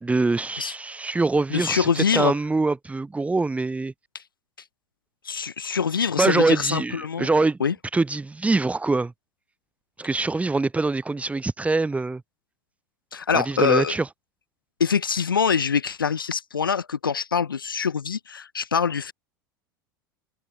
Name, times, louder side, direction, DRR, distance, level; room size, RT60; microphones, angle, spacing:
voice 1, 0.0-3.9 6.2-7.6 7.9-9.1 10.0-12.2 13.3-14.1, right 3 dB, 10° right, 2.0 m, -24 dB
voice 2, 1.5-2.4 4.1-4.2 5.2-7.3 7.6-7.7 13.1-13.9 14.8-19.1, left 6 dB, 85° left, 0.4 m, -24 dB
figure-of-eight pair, 75°, 11 cm